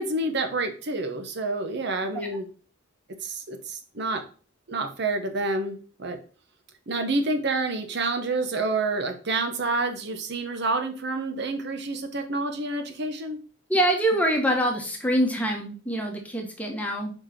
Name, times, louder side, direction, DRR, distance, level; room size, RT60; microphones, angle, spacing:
voice 1, 0.0-2.4 3.2-4.2 4.7-6.2 6.9-13.4, right 2 dB, 55° right, 7 dB, 0.9 m, -28 dB
voice 2, 13.7-17.1, right 1 dB, 5° left, 2 dB, 1.2 m, -25 dB
4.9 x 4.5 x 5.8 m, 0.39 s
head